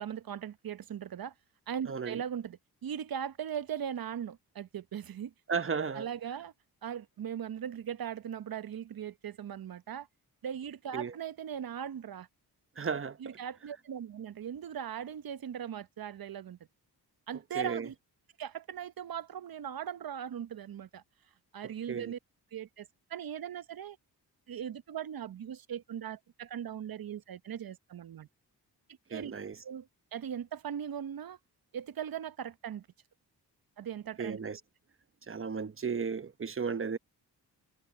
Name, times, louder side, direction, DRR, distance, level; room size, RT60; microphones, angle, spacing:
voice 1, 0.0-1.3 1.7-5.3 5.9-6.5 6.8-10.1 10.4-12.3 13.2-16.6 17.3-17.9 18.4-21.0 21.5-22.2 22.5-24.0 24.5-28.3 29.1-29.3 29.6-31.4 31.7-32.9 33.8-34.4, right 9 dB, 60° right, 0.9 m, -39 dB
voice 2, 1.9-2.2 5.5-6.1 10.9-11.1 12.8-13.4 17.5-17.9 21.9-22.1 29.1-29.6 34.2-34.6 35.3-37.0, right 6 dB, 30° right, 1.0 m, -34 dB
cardioid pair, 65°, 41 cm